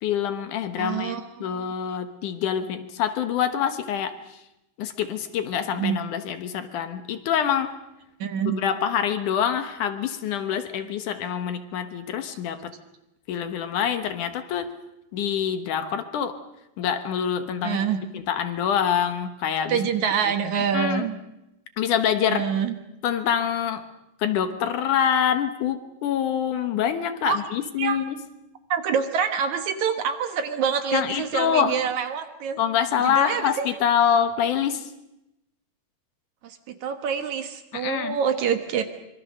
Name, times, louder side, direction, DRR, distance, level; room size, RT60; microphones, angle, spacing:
voice 1, 0.0-4.4 4.8-7.8 8.5-12.7 13.3-14.7 15.1-16.4 16.8-17.8 18.1-19.8 20.3-20.4 20.7-21.1 21.8-22.5 23.0-23.8 24.2-28.2 30.9-31.8 32.6-34.9 37.7-38.2, left 8 dB, 70° left, 9 dB, 2.6 m, -25 dB
voice 2, 0.8-1.7 5.7-6.0 8.2-8.6 17.6-18.0 19.7-21.2 22.3-22.8 27.2-27.4 27.8-28.0 28.7-32.6 33.0-33.7 36.4-38.8, right 7 dB, 65° right, 8 dB, 2.5 m, -26 dB
25.0 x 23.0 x 6.6 m, 0.88 s
omnidirectional pair, 4.0 m